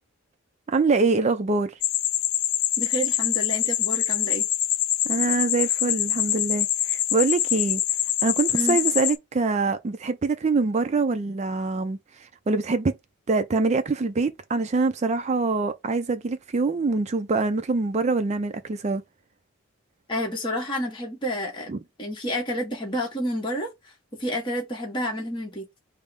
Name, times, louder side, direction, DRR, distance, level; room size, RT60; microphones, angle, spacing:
voice 1, 0.7-1.7 5.1-7.8 8.2-12.0 12.5-12.9 13.3-19.0 21.7-21.8, right 3 dB, 35° right, 0.4 m, -24 dB
sound 1, 1.8-9.2, left 12 dB, 90° left, 0.5 m, -25 dB
voice 2, 2.8-4.4 8.5-8.8 20.1-25.6, equal, 20° left, 0.9 m, -30 dB
5.4 x 2.0 x 4.8 m
head